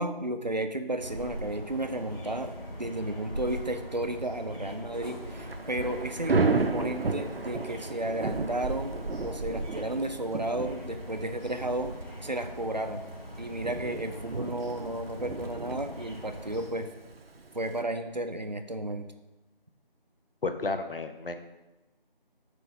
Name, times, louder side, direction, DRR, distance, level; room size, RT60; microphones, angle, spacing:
voice 1, 0.0-2.5 2.8-8.9 9.2-11.9 12.2-13.1 13.4-16.9 17.5-19.1, right 1 dB, 50° right, 7 dB, 0.5 m, -33 dB
sound 1, 0.9-16.7, equal, 10° left, 2.0 m, -41 dB
Thunder / Rain, 5.2-17.8, right 3 dB, 85° right, 0.6 m, -34 dB
voice 2, 20.4-21.4, left 3 dB, 70° left, 8 dB, 0.7 m, -32 dB
4.5 x 4.3 x 5.4 m, 1.1 s
figure-of-eight pair, 175°, 29 cm